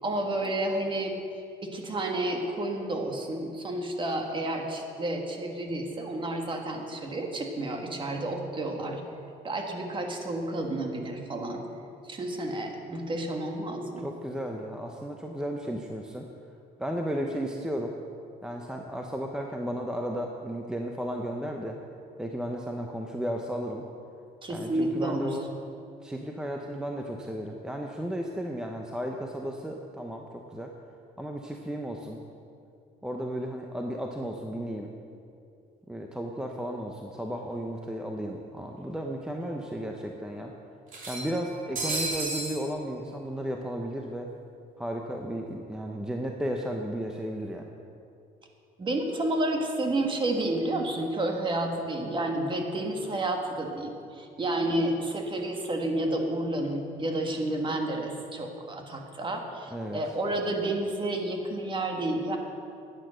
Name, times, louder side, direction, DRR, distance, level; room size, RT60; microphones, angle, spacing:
voice 1, 0.0-1.2 1.6-9.0 9.4-11.7 12.0-14.1 24.4-25.4 48.8-62.4, right 1 dB, 30° right, 3 dB, 1.7 m, -30 dB
voice 2, 14.0-16.3 16.8-17.9 18.4-21.8 22.2-23.8 24.5-25.4 26.0-30.7 31.2-32.2 33.0-34.9 35.9-40.5 41.1-44.3 44.8-47.6 59.7-60.0, equal, 5° right, 2 dB, 0.8 m, -34 dB
sound 1, 37.5-37.6 37.9-38.0 39.0-39.1 39.5-39.6 40.9-42.6, right 2 dB, 50° right, 2.9 m, -33 dB
12.0 x 9.1 x 6.3 m, 2.5 s
cardioid pair, 110°, 17 cm